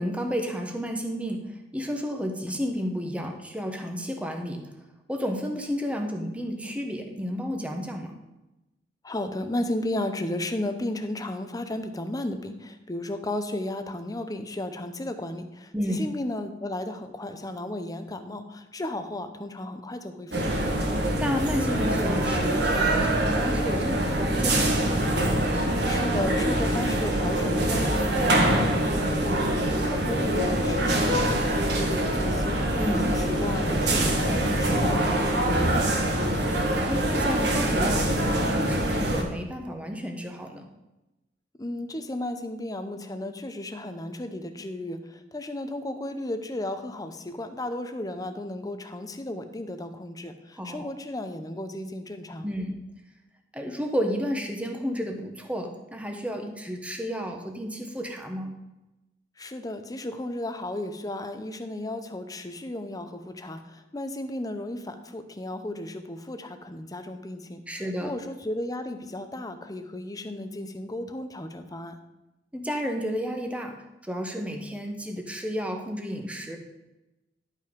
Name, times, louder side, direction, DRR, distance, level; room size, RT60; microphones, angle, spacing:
voice 1, 0.0-1.4 1.7-4.7 5.1-8.1 15.7-16.0 21.2-24.8 32.8-33.1 36.9-40.6 50.6-50.9 52.4-52.8 53.5-58.5 67.7-68.1 72.5-73.8 74.1-76.6, equal, 5° right, 3 dB, 1.0 m, -31 dB
voice 2, 9.0-20.5 25.8-29.4 29.7-32.6 32.9-36.2 41.6-52.5 59.4-67.6 68.0-72.0, left 1 dB, 20° left, 8 dB, 0.7 m, -34 dB
sound 1, 20.3-39.2, right 1 dB, 65° right, 1.6 m, -24 dB
11.0 x 5.6 x 5.1 m, 0.98 s
head